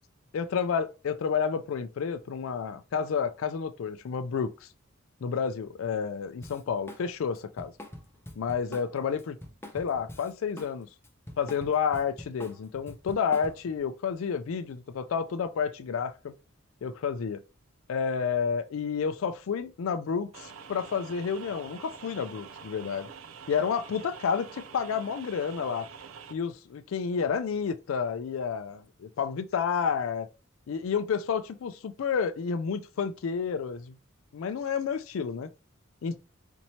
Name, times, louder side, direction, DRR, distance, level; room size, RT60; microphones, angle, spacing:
voice 1, 0.3-4.7 5.2-7.7 8.4-9.4 9.7-10.9 11.4-16.3 16.8-17.4 17.9-23.1 23.5-25.9 26.3-30.3 30.7-34.0 34.3-35.5 36.0-36.2, left 6 dB, 75° left, 0.4 m, -30 dB
Drum kit, 6.4-7.0 7.3-10.7 11.0-13.8, left 1 dB, 10° left, 0.6 m, -45 dB
sound 1, 20.3-26.3, right 6 dB, 85° right, 0.5 m, -46 dB
4.3 x 2.9 x 2.8 m
head